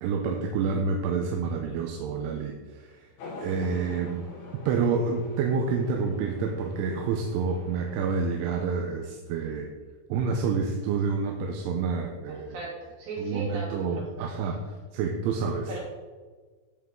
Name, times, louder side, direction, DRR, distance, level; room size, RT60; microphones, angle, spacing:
voice 1, 0.0-2.9 3.4-4.3 4.7-9.7 10.1-12.6 13.2-14.6 14.9-15.7, right 5 dB, 80° right, 3 dB, 3.1 m, -28 dB
sound 1, 3.2-8.7, left 2 dB, 70° left, 4.6 m, -45 dB
voice 2, 12.3-14.0 15.7-15.8, right 2 dB, 60° right, -6 dB, 5.3 m, -37 dB
15.5 x 5.5 x 3.8 m, 1.4 s
omnidirectional pair, 5.7 m